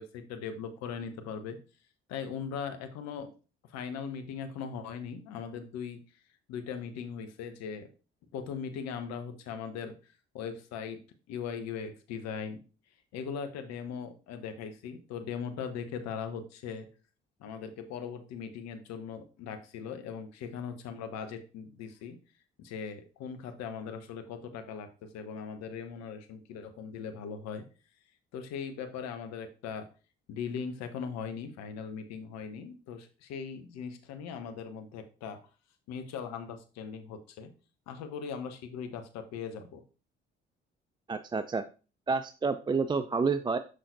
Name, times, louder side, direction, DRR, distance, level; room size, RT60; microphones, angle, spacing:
voice 1, 0.0-1.6 2.1-3.3 3.7-6.0 6.5-7.9 8.3-9.9 10.3-11.0 11.3-12.6 13.1-16.9 17.4-22.2 22.6-27.6 28.3-29.9 30.3-35.4 35.9-37.5 37.9-39.8, left 6 dB, 65° left, 8 dB, 1.0 m, -39 dB
voice 2, 41.1-41.6 42.1-43.6, right 4 dB, 15° right, 11 dB, 0.3 m, -29 dB
6.4 x 5.7 x 2.6 m, 0.34 s
hypercardioid pair, 50°, 29 cm